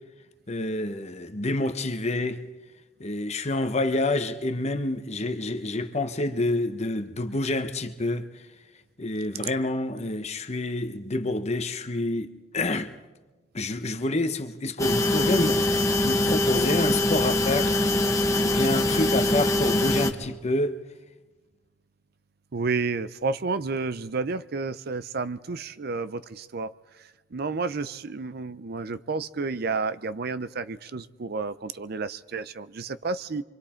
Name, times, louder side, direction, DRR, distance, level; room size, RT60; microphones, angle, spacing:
voice 1, 0.5-2.4 3.0-8.3 9.0-12.9 13.5-17.8 18.4-20.8, left 2 dB, 35° left, 1.0 m, -28 dB
sound 1, 14.8-20.1, left 2 dB, 15° left, 1.3 m, -23 dB
voice 2, 22.5-26.7 27.3-33.4, right 4 dB, 55° right, 0.6 m, -31 dB
26.5 x 24.0 x 4.4 m
head